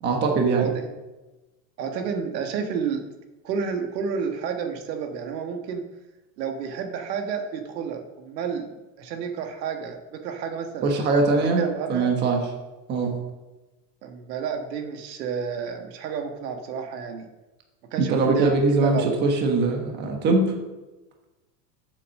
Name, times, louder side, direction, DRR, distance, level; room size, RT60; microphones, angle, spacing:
voice 1, 0.0-0.7 10.8-11.6 11.9-12.4 12.9-13.1 18.0-20.5, right 3 dB, 20° right, 2 dB, 1.2 m, -22 dB
voice 2, 1.8-3.0 3.4-5.8 6.4-10.9 11.4-12.1 14.0-17.3 17.9-19.2, right 6 dB, 90° right, 4 dB, 1.8 m, -30 dB
8.2 x 7.5 x 6.5 m, 1.1 s
supercardioid pair, 175°, 48 cm